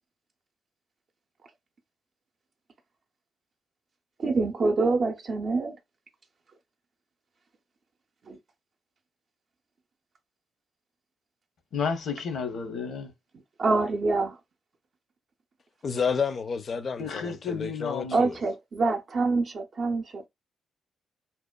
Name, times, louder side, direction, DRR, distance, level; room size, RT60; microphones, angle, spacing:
voice 1, 4.2-5.8 8.3-8.4 13.6-14.4 18.1-20.3, right 3 dB, 55° right, 0.5 m, -26 dB
voice 2, 11.7-13.1 17.0-18.3, left 5 dB, 75° left, 0.8 m, -32 dB
voice 3, 15.8-18.3, left 6 dB, 50° left, 0.5 m, -30 dB
2.8 x 2.1 x 2.2 m
cardioid pair, 70°, 0 cm